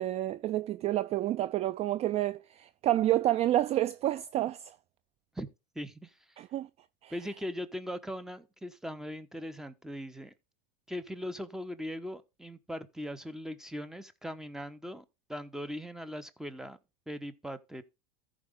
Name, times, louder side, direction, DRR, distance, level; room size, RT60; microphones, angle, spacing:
voice 1, 0.0-4.7 6.4-6.7 7.0-7.1, right 14 dB, 35° right, 0.4 m, -29 dB
voice 2, 5.7-6.4 7.1-10.3 10.9-16.8 17.1-17.8, equal, ahead, 1.0 m, -40 dB
14.5 x 5.1 x 3.6 m
supercardioid pair, 120°, 19 cm